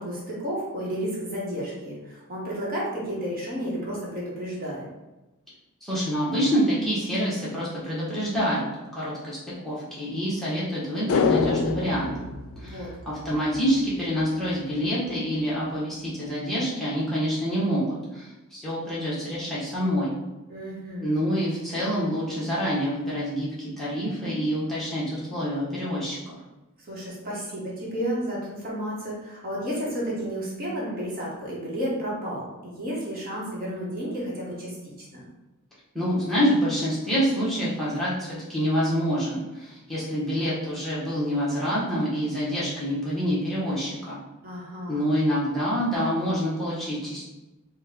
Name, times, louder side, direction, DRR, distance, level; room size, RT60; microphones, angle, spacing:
voice 1, 0.0-4.9 12.6-13.1 20.5-21.2 26.9-35.3 44.4-45.0, equal, 45° right, -5 dB, 1.1 m, -32 dB
voice 2, 5.8-8.7 9.0-9.4 9.6-12.1 12.6-20.2 21.0-26.3 35.9-44.2 44.9-47.2, equal, ahead, -9 dB, 1.0 m, -27 dB
sound 1, 11.1-13.6 13.9-14.0, left 5 dB, 80° left, 0.3 m, -26 dB
4.2 x 2.2 x 3.5 m, 1.0 s
head